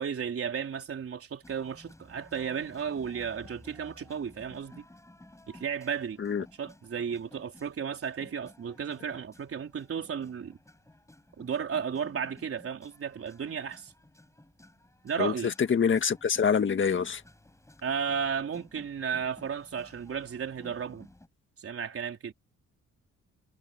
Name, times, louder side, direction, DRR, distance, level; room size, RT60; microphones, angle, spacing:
voice 1, 0.0-4.9 5.5-6.2 6.6-10.6 11.4-13.9 15.0-15.5 17.8-21.1 21.6-22.3, right 7 dB, 50° right, 3.9 m, -34 dB
sound 1, 1.4-21.3, left 1 dB, 10° left, 7.7 m, -55 dB
voice 2, 15.2-17.2, left 6 dB, 40° left, 1.6 m, -26 dB
cardioid pair, 90°, 30 cm